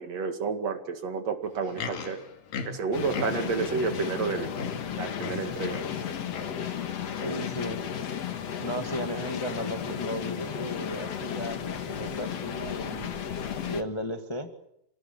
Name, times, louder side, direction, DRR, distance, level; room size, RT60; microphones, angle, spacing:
voice 1, 0.0-2.2 2.6-4.5 5.0-5.8, right 5 dB, 50° right, 7 dB, 3.1 m, -30 dB
Livestock farm animals working animals, 1.5-3.7 4.2-4.3 4.5-6.0 6.3-6.7 7.2-7.5 8.2-8.3, left 5 dB, 80° left, 4.1 m, -38 dB
sound 1, 2.9-13.8, left 8 dB, 55° left, 2.4 m, -34 dB
voice 2, 7.2-7.8 8.6-13.1 13.7-14.5, equal, 15° left, 5 dB, 0.9 m, -35 dB
29.0 x 18.0 x 8.7 m, 0.79 s
omnidirectional pair, 3.9 m